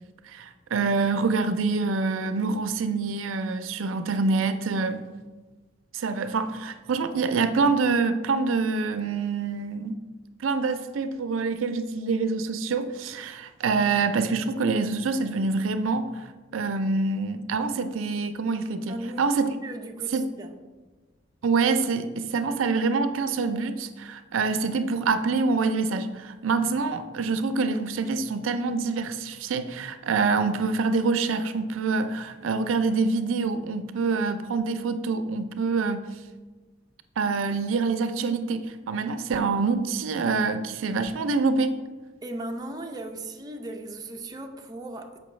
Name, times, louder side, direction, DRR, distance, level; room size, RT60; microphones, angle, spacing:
voice 1, 0.3-5.1 5.9-9.9 10.4-19.5 20.1-20.3 21.4-36.1 37.2-41.7, right 4 dB, 85° right, 0.4 m, -26 dB
voice 2, 18.9-19.2 19.6-20.6 42.2-45.2, right 1 dB, 20° right, 0.4 m, -37 dB
6.8 x 5.2 x 3.1 m
head